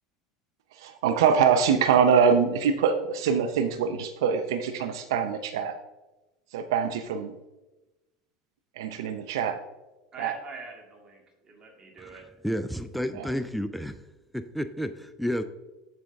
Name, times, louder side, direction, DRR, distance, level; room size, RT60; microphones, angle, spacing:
voice 1, 0.7-5.8 6.5-7.4 8.8-9.6 10.2-10.3 13.1-13.3, right 6 dB, 80° right, 9 dB, 0.5 m, -24 dB
voice 2, 10.1-12.2, right 4 dB, 35° right, 1 dB, 2.1 m, -44 dB
voice 3, 12.4-14.0 14.3-15.4, equal, ahead, 11 dB, 0.4 m, -31 dB
7.7 x 6.2 x 3.4 m, 1.1 s
hypercardioid pair, 85°, 2 cm